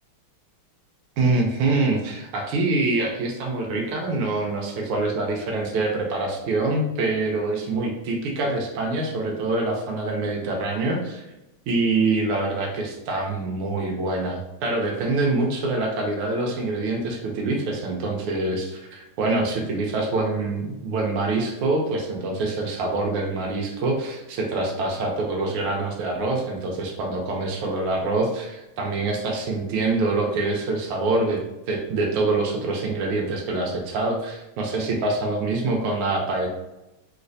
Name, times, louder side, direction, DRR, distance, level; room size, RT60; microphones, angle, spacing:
voice 1, 1.2-11.2 11.7-31.4 31.7-36.5, right 2 dB, 90° right, 0 dB, 1.5 m, -25 dB
3.2 x 3.1 x 2.5 m, 0.96 s
omnidirectional pair, 2.4 m